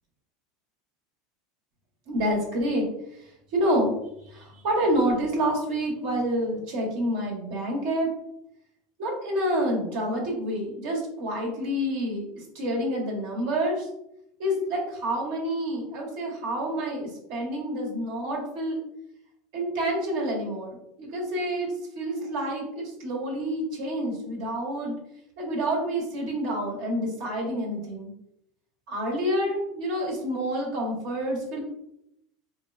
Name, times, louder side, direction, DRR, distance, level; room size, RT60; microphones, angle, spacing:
voice 1, 2.1-2.9 3.5-3.9 4.3-8.1 9.0-12.3 12.5-13.8 14.4-18.8 19.5-25.0 25.4-28.1 28.9-31.6, equal, 70° right, -1 dB, 0.9 m, -28 dB
3.0 x 2.1 x 2.3 m, 0.78 s
supercardioid pair, 130°, 0 cm